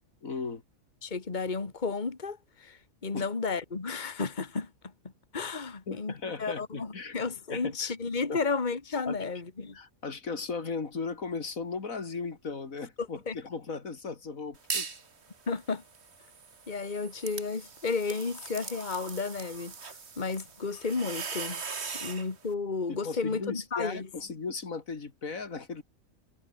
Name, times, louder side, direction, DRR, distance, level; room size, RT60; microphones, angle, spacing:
voice 1, 0.2-0.6 3.1-3.3 5.9-7.2 7.5-7.9 8.3-8.4 9.1-9.2 9.7-14.9 21.9-22.0 22.9-25.8, left 4 dB, 75° left, 2.8 m, -37 dB
voice 2, 1.0-4.7 5.3-6.1 6.4-9.8 13.3-13.4 15.5-15.8 16.7-21.6 21.9-24.1, left 4 dB, 35° left, 2.0 m, -33 dB
sound 1, 14.5-15.1 15.5-22.3, right 5 dB, 50° right, 2.0 m, -40 dB
omnidirectional pair, 1.4 m